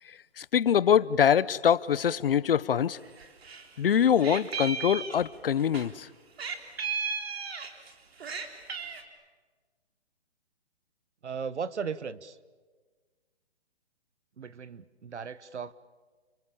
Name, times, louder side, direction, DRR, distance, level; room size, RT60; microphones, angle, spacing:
voice 1, 0.1-3.0 3.8-6.1, left 8 dB, 55° left, 20 dB, 0.9 m, -24 dB
Meow, 3.0-3.7 3.9-5.9 6.4-7.9 8.2-9.0, right 6 dB, 65° right, 3.8 m, -35 dB
voice 2, 11.2-12.4 14.4-15.7, right 6 dB, 85° right, 16 dB, 1.5 m, -36 dB
30.0 x 26.0 x 7.2 m, 1.4 s
hypercardioid pair, 160°, 34 cm